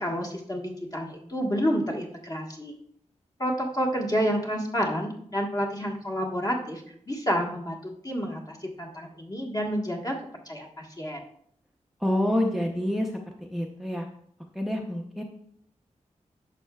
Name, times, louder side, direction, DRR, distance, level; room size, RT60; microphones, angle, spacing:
voice 1, 0.0-2.7 3.4-6.8 7.1-7.8 8.0-10.1 10.5-11.2, equal, 30° left, 0 dB, 1.4 m, -29 dB
voice 2, 12.0-13.1 13.5-14.1 14.5-15.2, left 1 dB, ahead, 1 dB, 0.7 m, -27 dB
11.0 x 6.6 x 2.3 m, 0.67 s
wide cardioid pair, 110°, 13 cm